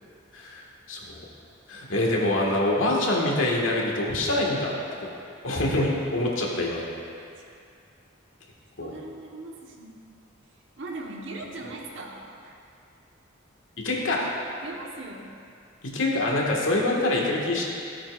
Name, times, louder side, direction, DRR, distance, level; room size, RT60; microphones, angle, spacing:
voice 1, 0.3-1.2 1.7-4.7 5.4-6.8 8.8-8.9 13.8-14.3 15.8-17.6, left 1 dB, 85° left, -3 dB, 1.7 m, -25 dB
voice 2, 8.8-10.1 10.8-12.5 14.5-15.3, right 2 dB, 65° right, -1 dB, 1.2 m, -39 dB
16.0 x 8.5 x 2.5 m, 2.5 s
head